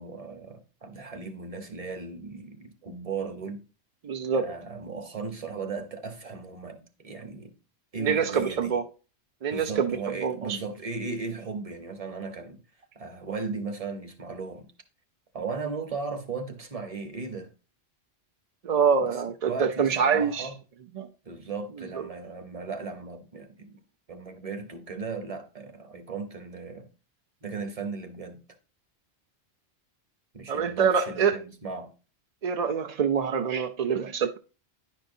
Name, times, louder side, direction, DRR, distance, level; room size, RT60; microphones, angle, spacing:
voice 1, 0.0-3.6 4.3-7.5 7.9-8.8 9.5-12.6 12.9-14.7 15.3-17.5 19.0-19.2 19.4-20.6 21.2-23.8 24.1-26.9 27.4-28.4 30.3-31.9, right 4 dB, 35° right, 1.0 m, -36 dB
voice 2, 4.0-4.5 8.0-8.9 9.4-10.6 18.6-20.5 21.0-21.1 22.0-22.1 30.5-31.4 32.4-34.4, right 6 dB, 50° right, 0.4 m, -25 dB
10.0 x 5.4 x 2.6 m
omnidirectional pair, 1.1 m